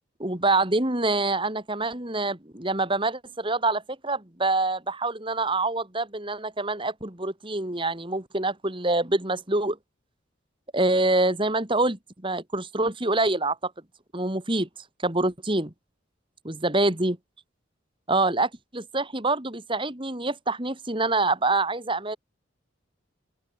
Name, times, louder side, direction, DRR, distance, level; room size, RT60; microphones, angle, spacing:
voice 1, 0.2-9.8 10.7-13.7 14.1-14.7 15.0-15.7 16.4-17.2 18.1-22.2, right 2 dB, 25° right, 2.5 m, -26 dB
open air
head